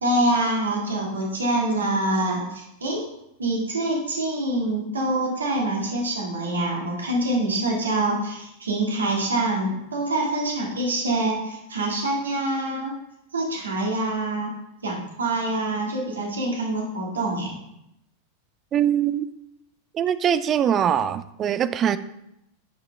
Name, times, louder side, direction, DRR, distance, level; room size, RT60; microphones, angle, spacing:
voice 1, 0.0-3.0 3.4-12.9 13.3-14.5 14.8-17.5, right 2 dB, 70° right, -1 dB, 1.8 m, -25 dB
voice 2, 18.7-19.3 19.9-22.0, right 9 dB, 30° right, 14 dB, 0.4 m, -22 dB
9.5 x 5.7 x 3.3 m, 0.83 s
figure-of-eight pair, 90°, 0 cm